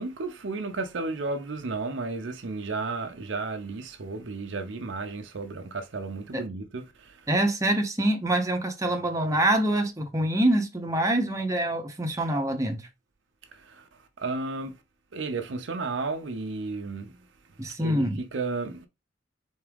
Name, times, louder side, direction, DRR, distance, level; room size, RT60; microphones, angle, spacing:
voice 1, 0.0-7.2 13.5-13.9 14.2-14.8 15.1-17.2 17.8-18.9, right 3 dB, 70° right, 0.6 m, -33 dB
voice 2, 7.3-12.9 17.6-18.2, right 1 dB, 15° right, 0.8 m, -25 dB
3.9 x 3.6 x 3.5 m
head